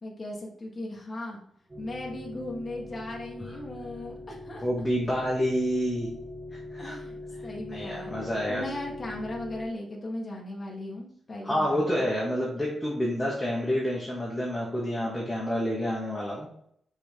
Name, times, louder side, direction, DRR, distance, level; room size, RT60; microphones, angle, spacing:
voice 1, 0.0-1.4 1.8-4.6 6.8-7.2 7.4-12.0, left 1 dB, 30° left, -2 dB, 1.4 m, -37 dB
sound 1, 1.7-9.6, left 2 dB, 25° right, 1.7 m, -42 dB
voice 2, 4.6-6.1 6.7-7.0 7.7-8.6 11.4-16.5, equal, 10° left, -5 dB, 1.7 m, -28 dB
6.0 x 4.4 x 3.6 m, 0.66 s
cardioid pair, 115°, 0 cm